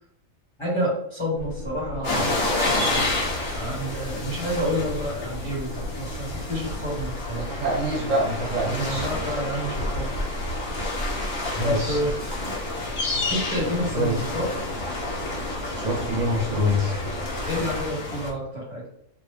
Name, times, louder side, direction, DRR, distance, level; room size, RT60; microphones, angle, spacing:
voice 1, 0.6-2.3 3.5-7.5 8.7-10.1 11.6-12.1 13.3-14.4 17.4-18.8, equal, 20° left, -7 dB, 1.6 m, -29 dB
sound 1, 1.3-17.9, left 1 dB, 85° left, 1.1 m, -37 dB
sound 2, 2.0-18.3, left 2 dB, 60° left, 1.3 m, -29 dB
voice 2, 7.5-9.1 11.5-12.2 12.4-12.5 13.9-14.2 15.8-16.9, equal, 65° right, -3 dB, 1.4 m, -25 dB
3.1 x 2.8 x 3.2 m, 0.74 s
omnidirectional pair, 1.4 m